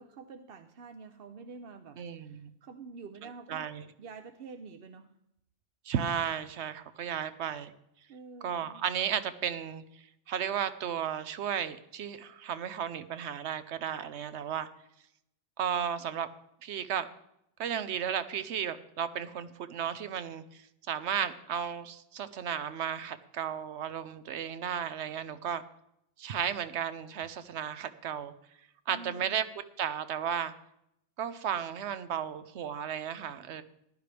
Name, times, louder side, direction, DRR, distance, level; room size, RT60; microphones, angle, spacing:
voice 1, 0.0-3.7 4.0-5.1 8.1-8.9 28.9-29.4, right 4 dB, 60° right, 7 dB, 0.8 m, -47 dB
voice 2, 2.0-2.5 3.5-3.8 5.9-7.7 8.4-9.8 10.3-14.7 15.6-16.3 16.6-17.1 17.6-20.4 20.9-25.6 26.2-28.3 28.9-29.4 29.8-30.5 31.2-33.6, right 8 dB, 80° right, 12 dB, 1.0 m, -34 dB
14.5 x 11.5 x 3.4 m, 0.78 s
omnidirectional pair, 1.2 m